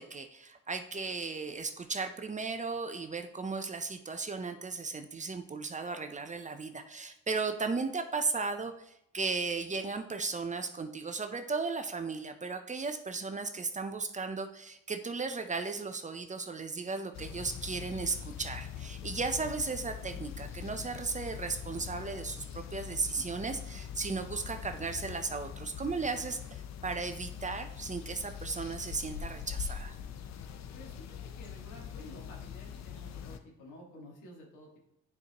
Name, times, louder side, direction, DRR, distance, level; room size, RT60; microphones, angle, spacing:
voice 1, 0.0-29.9, right 4 dB, 25° right, 7 dB, 0.6 m, -36 dB
sound 1, 17.1-33.4, left 8 dB, 60° left, 0.7 m, -43 dB
voice 2, 30.7-34.8, left 1 dB, 85° left, -1 dB, 1.9 m, -52 dB
9.6 x 4.6 x 2.9 m, 0.76 s
cardioid pair, 90°, 30 cm